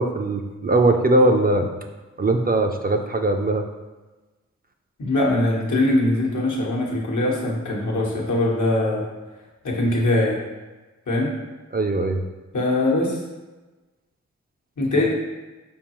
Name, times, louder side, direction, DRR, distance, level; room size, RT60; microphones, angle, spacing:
voice 1, 0.0-1.7 2.2-3.7 11.7-12.2, right 2 dB, 30° right, 5 dB, 0.4 m, -20 dB
voice 2, 5.0-9.1 9.6-10.4 11.1-11.4 12.5-13.2 14.8-15.1, left 1 dB, 85° left, -3 dB, 1.0 m, -22 dB
4.6 x 3.7 x 3.0 m, 1.2 s
wide cardioid pair, 75°, 29 cm